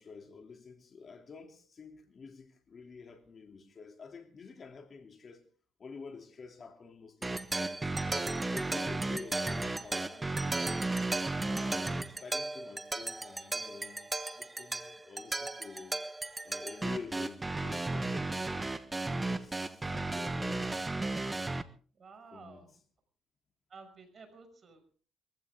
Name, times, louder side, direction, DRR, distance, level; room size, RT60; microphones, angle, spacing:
voice 1, 0.0-5.4 5.8-7.9 8.5-10.6 11.3-16.0 16.4-18.5 19.0-20.9 22.3-22.6, left 5 dB, 45° left, 2.8 m, -49 dB
sound 1, 7.2-21.6, right 2 dB, 20° right, 1.2 m, -34 dB
voice 2, 9.7-10.3 19.6-20.3 21.9-22.7 23.7-25.0, right 4 dB, 45° right, 5.9 m, -54 dB
22.5 x 15.0 x 3.6 m
cardioid pair, 90°, 0 cm